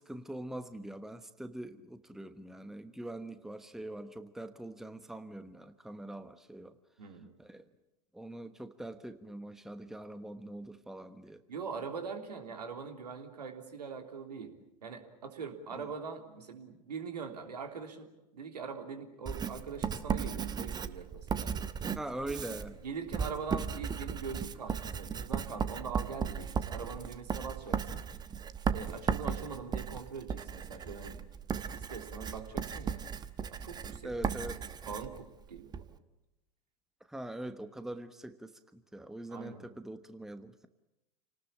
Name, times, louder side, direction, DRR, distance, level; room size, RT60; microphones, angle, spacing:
voice 1, 0.0-6.7 7.4-7.6 8.1-11.4 15.7-15.9 21.9-22.7 34.0-34.6 37.1-40.7, right 1 dB, ahead, 10 dB, 1.1 m, -43 dB
voice 2, 7.0-7.3 11.5-14.5 14.8-21.5 22.5-28.0 28.7-31.2 31.7-33.0 33.5-34.1 34.8-35.8 39.3-39.7, right 5 dB, 75° right, 5 dB, 3.4 m, -42 dB
Writing, 19.3-35.9, right 7 dB, 20° right, 1.2 m, -36 dB
28.0 x 19.0 x 8.8 m, 0.91 s
figure-of-eight pair, 90°, 21 cm